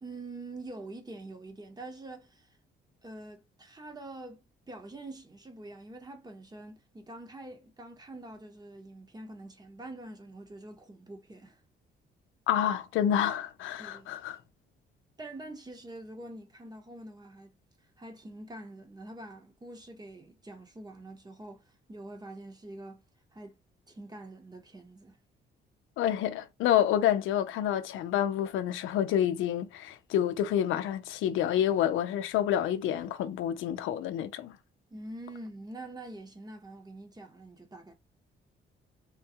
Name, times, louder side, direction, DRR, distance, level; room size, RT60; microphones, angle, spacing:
voice 1, 0.0-2.5 3.0-11.6 13.8-14.2 15.2-17.5 18.0-23.0 23.3-23.6 23.9-25.2 34.9-37.9, right 2 dB, 20° right, 1.0 m, -45 dB
voice 2, 12.5-14.4 26.0-34.6, left 10 dB, 85° left, 0.5 m, -28 dB
3.6 x 2.3 x 2.8 m
cardioid pair, 90°, 20 cm